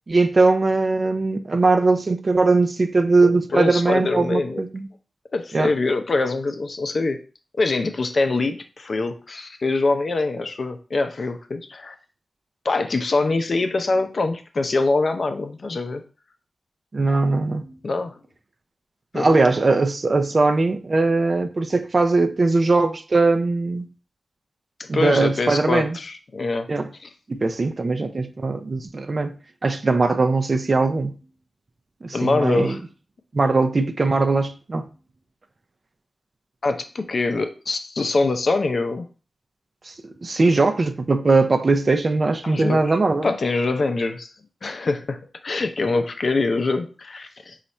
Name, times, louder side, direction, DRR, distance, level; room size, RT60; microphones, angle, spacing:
voice 1, 0.1-4.9 5.5-5.7 16.9-17.8 19.1-23.9 24.9-26.0 26.7-26.9 27.3-29.3 29.6-31.2 32.0-32.8 33.3-34.9 39.9-40.0 40.2-43.3, right 3 dB, 50° right, 0.4 m, -20 dB
voice 2, 3.2-4.6 5.3-7.2 7.6-11.9 12.6-16.0 17.8-18.2 19.1-19.4 24.8-26.7 27.0-27.1 32.1-32.8 36.6-39.1 42.4-43.0 43.2-44.3 44.6-45.2 45.4-47.6, left 3 dB, 60° left, 0.5 m, -24 dB
4.0 x 2.4 x 4.2 m
cardioid pair, 65°, 0 cm